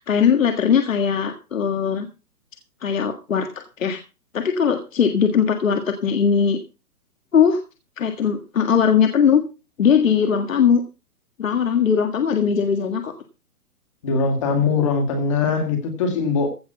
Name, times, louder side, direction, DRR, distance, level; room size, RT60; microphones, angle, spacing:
voice 1, 0.0-2.1 2.8-4.0 4.3-6.6 7.3-7.6 8.0-9.4 9.8-10.8 11.4-13.1, left 7 dB, 60° left, 6 dB, 1.8 m, -19 dB
voice 2, 14.0-16.5, left 4 dB, 20° left, 5 dB, 2.1 m, -21 dB
16.0 x 6.1 x 6.9 m, 0.31 s
hypercardioid pair, 180°, 45 cm